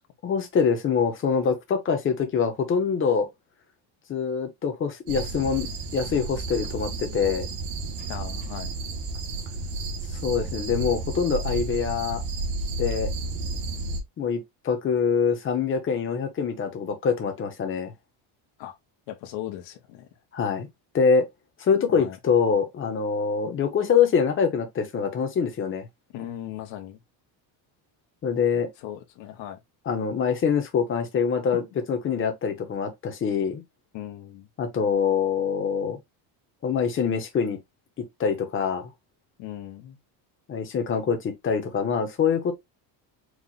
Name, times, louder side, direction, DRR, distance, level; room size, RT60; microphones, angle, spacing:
voice 1, 0.2-3.3 4.1-7.5 10.2-12.2 12.8-13.1 14.2-17.9 20.3-20.7 20.9-21.3 21.6-25.8 28.2-28.7 29.9-31.6 31.9-33.6 34.6-36.0 36.6-37.6 38.0-38.9 40.5-42.5, left 6 dB, 25° left, 1.0 m, -24 dB
sound 1, 5.1-14.0, right 3 dB, 55° right, 1.3 m, -32 dB
voice 2, 8.1-8.7 18.6-18.8 19.1-20.1 21.9-22.2 26.1-27.0 28.8-29.6 31.5-31.6 33.9-34.5 39.4-40.0, left 12 dB, 65° left, 1.3 m, -38 dB
4.8 x 2.4 x 4.0 m
cardioid pair, 165°, 47 cm